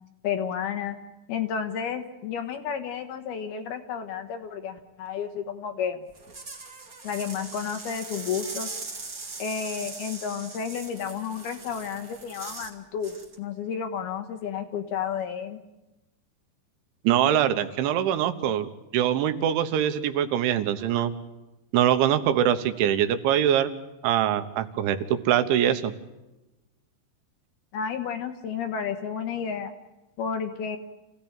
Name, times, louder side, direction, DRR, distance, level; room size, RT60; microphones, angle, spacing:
voice 1, 0.2-1.0 1.3-6.0 7.0-8.7 9.4-15.6 27.7-29.7 30.2-30.8, left 7 dB, 70° left, 7 dB, 2.8 m, -31 dB
sound 1, 6.1-12.7 13.0-13.3, right 3 dB, 35° right, 1.3 m, -40 dB
voice 2, 17.1-21.1 21.7-23.7 24.0-25.9, right 10 dB, 80° right, 10 dB, 3.5 m, -23 dB
28.0 x 16.5 x 8.9 m, 1.0 s
omnidirectional pair, 5.4 m